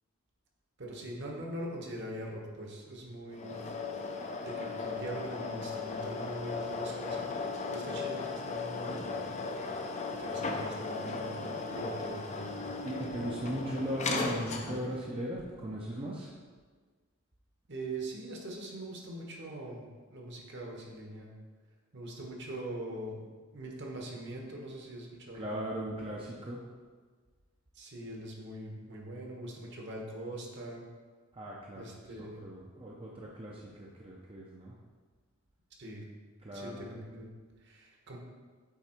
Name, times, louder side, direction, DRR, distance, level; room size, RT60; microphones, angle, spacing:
voice 1, 0.8-3.7 4.4-9.0 10.2-12.5 17.7-21.3 21.9-23.2 23.5-25.5 27.7-30.8 31.7-32.4 35.8-36.0 36.5-37.3 37.6-38.2, right 1 dB, 55° right, 0 dB, 1.1 m, -42 dB
sound 1, 3.3-15.0, left 3 dB, 30° left, 0.5 m, -37 dB
voice 2, 12.8-16.3 25.3-26.6 31.3-34.8 36.4-36.9, equal, 25° right, -3 dB, 0.6 m, -38 dB
8.2 x 3.5 x 4.4 m, 1.5 s
head